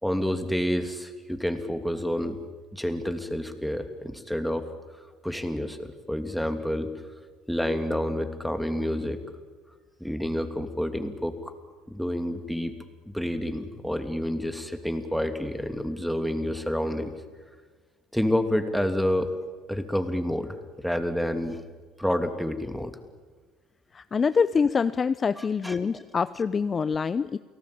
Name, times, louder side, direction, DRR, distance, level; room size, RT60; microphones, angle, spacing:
voice 1, 0.0-2.4 2.7-4.6 5.2-6.9 7.5-9.2 10.0-11.5 11.9-12.7 13.0-17.1 18.1-19.3 19.7-21.6 22.0-23.0 25.4-26.0, equal, ahead, 7 dB, 2.9 m, -29 dB
voice 2, 23.9-27.4, left 5 dB, 35° left, 14 dB, 0.7 m, -25 dB
29.5 x 18.0 x 8.7 m, 1.5 s
hypercardioid pair, 70°, 0 cm